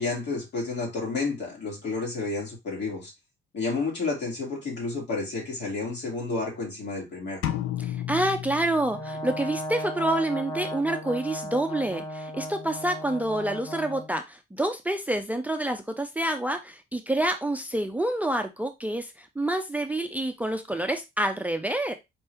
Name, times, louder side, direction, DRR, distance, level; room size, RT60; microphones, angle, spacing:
voice 1, 0.0-3.1 3.5-7.4, left 3 dB, 60° left, 2.5 m, -31 dB
sound 1, 7.4-9.4, left 12 dB, 85° left, 0.5 m, -32 dB
voice 2, 7.8-21.9, right 1 dB, 10° right, 0.5 m, -28 dB
Brass instrument, 8.9-14.1, equal, 20° left, 1.0 m, -36 dB
4.5 x 2.8 x 3.3 m
cardioid pair, 90°, 20 cm